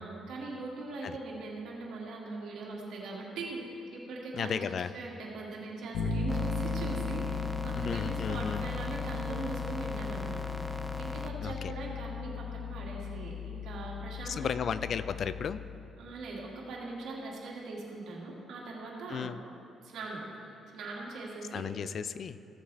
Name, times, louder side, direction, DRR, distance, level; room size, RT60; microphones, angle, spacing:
voice 1, 0.0-4.6 4.9-10.4 11.0-14.6 16.0-19.3 19.8-20.2 20.7-21.7, right 3 dB, 80° right, -3 dB, 2.1 m, -41 dB
voice 2, 4.3-4.9 7.8-8.7 11.4-11.7 14.2-15.6 19.1-19.4 21.5-22.4, left 7 dB, 55° left, 14 dB, 0.3 m, -34 dB
Bass guitar, 5.9-15.8, left 5 dB, 85° left, 1.0 m, -36 dB
sound 1, 6.3-11.3, left 1 dB, 5° left, 0.6 m, -40 dB
15.5 x 7.5 x 3.4 m, 2.7 s
cardioid pair, 90°, 0 cm